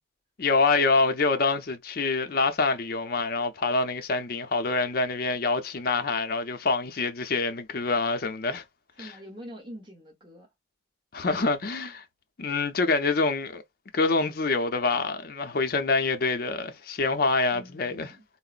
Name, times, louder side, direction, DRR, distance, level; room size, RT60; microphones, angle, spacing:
voice 1, 0.4-8.6 9.0-9.1 11.1-12.0 12.4-13.6 13.9-18.1, left 3 dB, 50° left, 0.5 m, -26 dB
voice 2, 9.0-10.5 17.5-18.2, equal, 25° right, 1.0 m, -44 dB
3.7 x 2.0 x 2.4 m
head